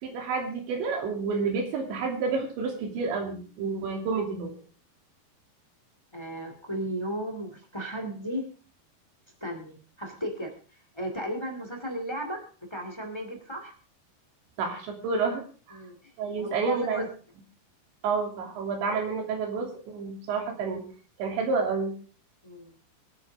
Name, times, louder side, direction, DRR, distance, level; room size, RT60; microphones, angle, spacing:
voice 1, 0.0-4.6 14.6-15.4 15.7-15.8 16.2-17.0 18.0-20.8 21.2-21.9, right 4 dB, 80° right, 3 dB, 5.1 m, -29 dB
voice 2, 6.1-8.5 9.4-13.7 15.7-16.1 16.4-17.1 22.4-22.7, equal, 10° left, 4 dB, 1.3 m, -35 dB
24.5 x 9.1 x 3.5 m, 0.38 s
omnidirectional pair, 5.1 m